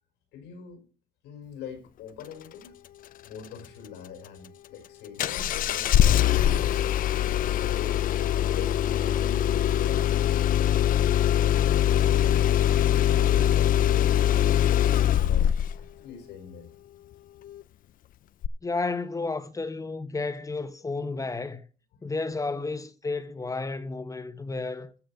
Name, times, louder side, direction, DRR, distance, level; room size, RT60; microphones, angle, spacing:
voice 1, 0.3-0.8 1.2-2.7 3.2-6.9 7.5-8.0 8.4-10.5 11.1-16.7, left 7 dB, 90° left, 5.1 m, -44 dB
Engine starting, 5.2-15.8 18.4-18.5, left 11 dB, 55° left, 0.6 m, -22 dB
voice 2, 18.6-21.6 22.0-24.9, left 3 dB, 20° left, 1.2 m, -32 dB
14.5 x 5.6 x 7.0 m
cardioid pair, 110°, 17 cm